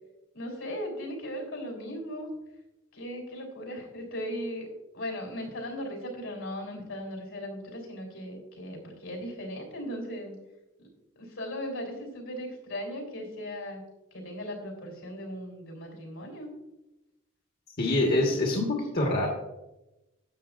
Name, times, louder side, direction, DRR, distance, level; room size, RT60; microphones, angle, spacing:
voice 1, 0.3-2.3 2.9-4.7 4.9-10.3 11.2-13.8 14.1-16.5, equal, 80° left, 1 dB, 3.6 m, -37 dB
voice 2, 17.8-19.3, left 2 dB, 50° left, -1 dB, 1.3 m, -25 dB
12.0 x 8.2 x 2.5 m, 0.96 s
head